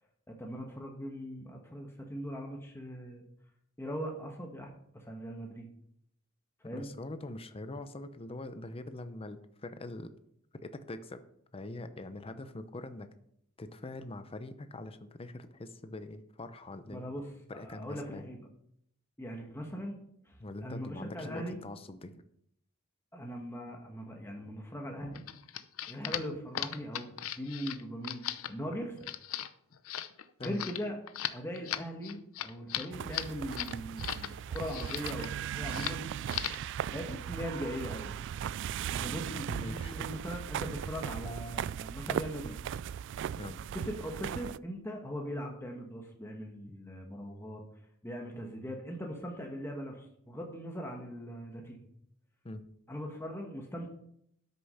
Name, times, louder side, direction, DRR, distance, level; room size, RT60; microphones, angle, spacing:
voice 1, 0.3-3.3 3.8-5.7 6.6-6.9 16.9-17.2 17.5-18.4 19.2-20.0 20.2-21.6 23.1-25.2 25.9-29.0 30.4-31.0 31.3-36.1 36.9-38.1 38.9-42.6 43.7-47.6 48.0-51.8 52.9-53.9, equal, 10° left, 1 dB, 1.3 m, -40 dB
voice 2, 6.7-10.1 10.6-11.2 11.5-13.1 13.6-17.1 17.5-18.3 20.4-22.2 30.4-30.6 35.8-35.9 39.5-39.9 43.4-43.6 46.7-46.8 52.4-52.7, left 2 dB, 25° left, 10 dB, 0.7 m, -43 dB
sound 1, 25.1-34.3 34.6-35.3 35.7-36.0 36.3-36.7, left 11 dB, 75° left, 0.7 m, -38 dB
sound 2, 32.9-44.6, right 9 dB, 60° right, 0.3 m, -38 dB
12.5 x 6.8 x 5.6 m, 0.72 s
head